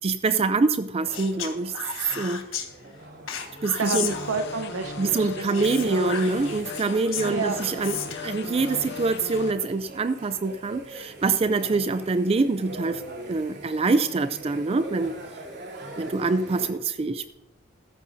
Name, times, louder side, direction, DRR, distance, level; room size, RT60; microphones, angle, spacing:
voice 1, 0.0-1.8 2.1-2.4 3.6-4.2 5.0-15.1 16.0-17.3, right 3 dB, 30° right, 11 dB, 0.4 m, -25 dB
sound 1, 1.0-16.7, right 2 dB, 55° right, 3.3 m, -43 dB
Speech, 1.1-2.7 3.3-4.7 5.5-8.4, left 8 dB, 90° left, 1.5 m, -35 dB
voice 2, 3.8-6.4 7.2-7.6, right 4 dB, 85° right, 4 dB, 0.8 m, -30 dB
sound 2, 3.9-9.5, left 3 dB, 60° left, 1.0 m, -37 dB
15.0 x 13.0 x 2.7 m, 0.96 s
head